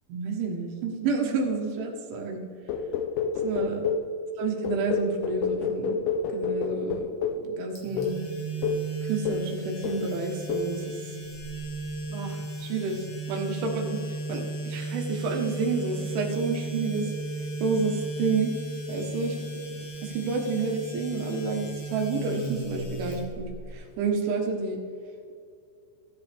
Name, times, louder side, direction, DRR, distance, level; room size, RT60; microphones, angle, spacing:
voice 1, 0.1-2.4 3.4-3.9 4.4-6.0 6.3-7.0 7.4-8.2 9.0-11.1 12.1-17.1 17.6-18.5 18.9-19.4 20.0-24.8, right 4 dB, 85° right, 1 dB, 3.8 m, -30 dB
sound 1, 2.7-4.1 4.6-7.5 8.0-8.2 8.6-8.9 9.3-9.6 9.8-10.1 10.5-10.8, left 5 dB, 85° left, 2.2 m, -29 dB
sound 2, 7.8-23.7, right 2 dB, 50° left, 3.2 m, -35 dB
14.0 x 11.5 x 3.5 m, 2.3 s
omnidirectional pair, 5.2 m